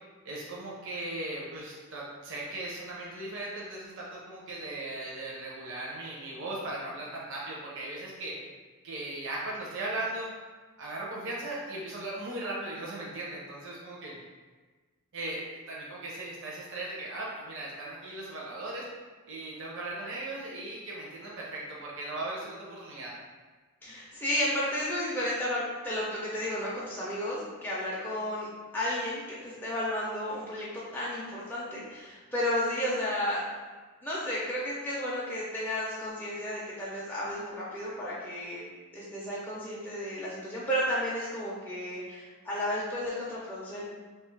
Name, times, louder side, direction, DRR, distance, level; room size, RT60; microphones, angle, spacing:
voice 1, 0.2-8.4 8.8-10.3 10.8-14.2 15.1-18.9 19.3-23.1, right 2 dB, 55° right, -5 dB, 0.5 m, -38 dB
voice 2, 23.8-28.5 28.7-30.7 30.9-33.4 34.0-38.6 38.9-43.8, left 1 dB, 10° left, -8 dB, 0.3 m, -32 dB
2.7 x 2.3 x 3.1 m, 1.3 s
head